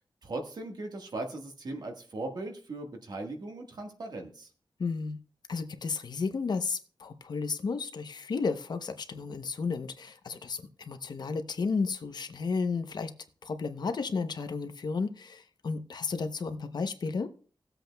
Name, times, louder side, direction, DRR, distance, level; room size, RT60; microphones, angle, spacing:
voice 1, 0.2-4.5, right 2 dB, 60° right, 3 dB, 1.5 m, -38 dB
voice 2, 4.8-5.2 5.5-13.1 13.4-17.3, left 4 dB, 60° left, 9 dB, 0.7 m, -33 dB
18.0 x 7.9 x 2.2 m, 0.41 s
wide cardioid pair, 165°, 8 cm